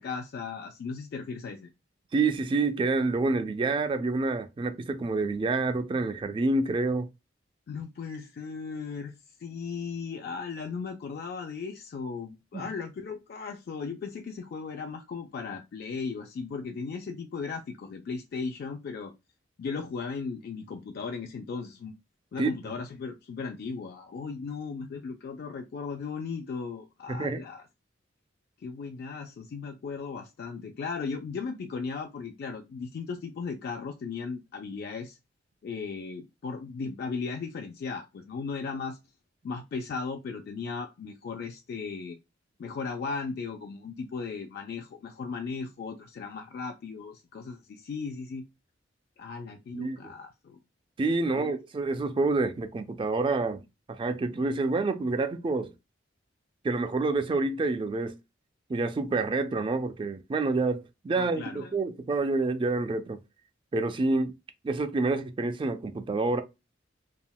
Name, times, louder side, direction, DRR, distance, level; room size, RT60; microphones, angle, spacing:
voice 1, 0.0-1.7 7.7-9.1 9.4-19.1 19.6-21.9 22.3-27.6 28.6-35.2 35.6-39.0 39.4-42.2 42.6-48.5 49.2-50.6 51.3-51.5 61.2-61.7, left 5 dB, 55° left, 0.3 m, -36 dB
voice 2, 2.1-7.1 12.5-12.6 22.4-22.8 27.1-27.4 49.7-50.1 51.0-53.6 53.9-55.7 56.6-58.2 58.7-63.2 63.7-64.3 64.6-66.4, right 3 dB, 25° right, 0.3 m, -28 dB
3.5 x 2.1 x 2.2 m
head